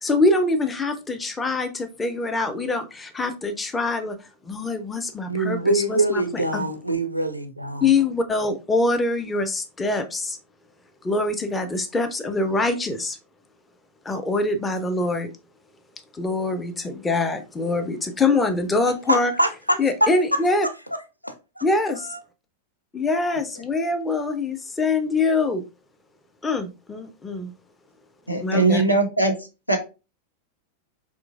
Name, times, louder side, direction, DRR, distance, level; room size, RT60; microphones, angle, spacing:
voice 1, 0.0-4.2 4.4-6.2 6.5-6.7 7.8-10.4 11.0-13.2 14.1-15.3 16.1-19.3 19.8-20.7 21.6-22.1 22.9-25.6 26.4-27.5 28.4-28.8, left 3 dB, 15° left, 0.5 m, -24 dB
voice 2, 5.3-7.9 19.1-20.4 21.2-21.6 22.0-22.2, right 1 dB, 90° right, 0.4 m, -24 dB
voice 3, 28.3-29.3 29.7-29.8, right 3 dB, 85° left, 0.6 m, -20 dB
3.7 x 2.9 x 2.4 m
figure-of-eight pair, 90°, 0 cm